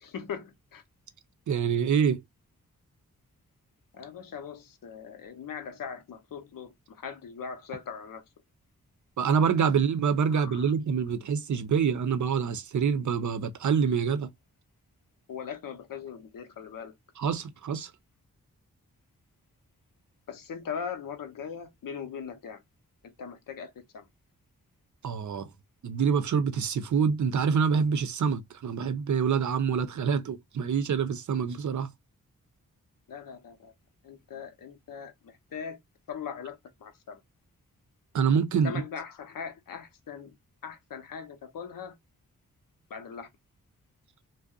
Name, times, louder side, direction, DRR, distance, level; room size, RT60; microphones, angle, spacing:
voice 1, 0.0-0.8 3.9-8.2 10.3-10.7 15.3-16.9 20.3-22.6 23.0-24.1 33.1-33.7 34.0-35.8 36.1-37.2 38.6-40.4 40.6-41.9 42.9-43.3, left 7 dB, 75° left, 0.7 m, -40 dB
voice 2, 1.5-2.2 9.2-14.3 17.2-17.9 25.0-25.5 25.8-31.9 38.1-38.8, right 6 dB, 55° right, 0.6 m, -26 dB
2.6 x 2.1 x 2.3 m
cardioid pair, 45°, 34 cm